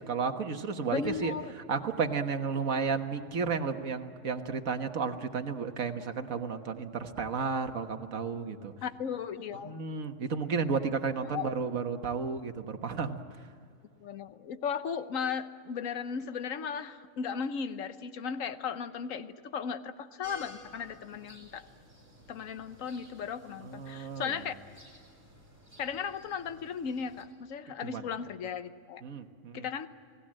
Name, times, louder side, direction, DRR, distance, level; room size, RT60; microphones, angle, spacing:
voice 1, 0.0-1.3 1.7-8.7 9.6-13.2 23.6-24.3 27.8-28.0 29.0-29.7, right 5 dB, 80° right, 7 dB, 1.8 m, -32 dB
voice 2, 0.9-1.5 8.8-9.8 11.2-11.5 14.0-21.6 22.3-24.5 25.8-29.0 29.5-29.9, left 6 dB, 75° left, 11 dB, 1.3 m, -36 dB
sound 1, 20.2-27.2, equal, 35° right, 6.2 m, -54 dB
29.5 x 18.5 x 7.6 m, 2.4 s
omnidirectional pair, 1.4 m